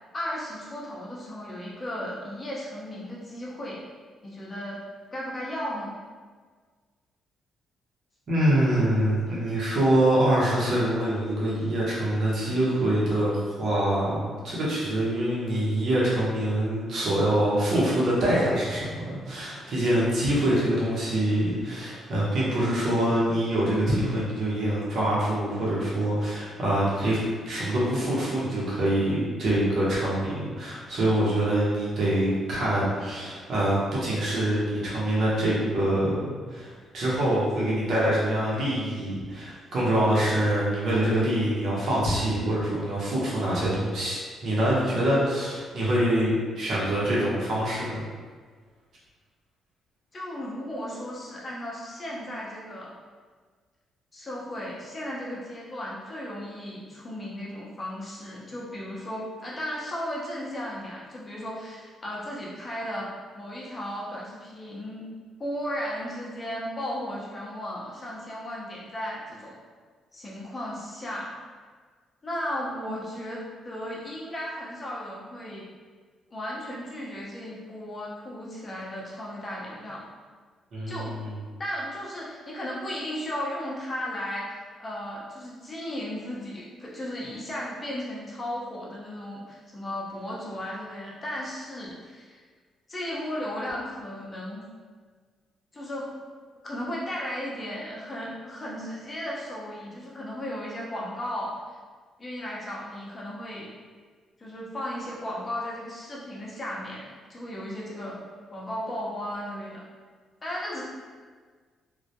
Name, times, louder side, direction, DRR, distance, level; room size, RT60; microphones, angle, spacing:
voice 1, 0.1-3.8 4.2-4.8 5.1-5.9 50.1-52.9 54.1-65.1 65.4-69.6 70.1-71.3 72.2-75.6 76.3-80.0 80.9-81.2 81.6-84.5 84.8-92.4 92.9-94.6 95.7-96.1 96.6-101.6 102.2-103.7 104.4-107.0 107.3-108.2 108.5-109.8 110.4-110.8, equal, 30° left, -5 dB, 0.6 m, -35 dB
voice 2, 8.3-27.2 27.5-48.0 80.7-81.3, right 1 dB, 60° right, -7 dB, 0.8 m, -25 dB
2.2 x 2.0 x 2.8 m, 1.6 s
cardioid pair, 90°, 0 cm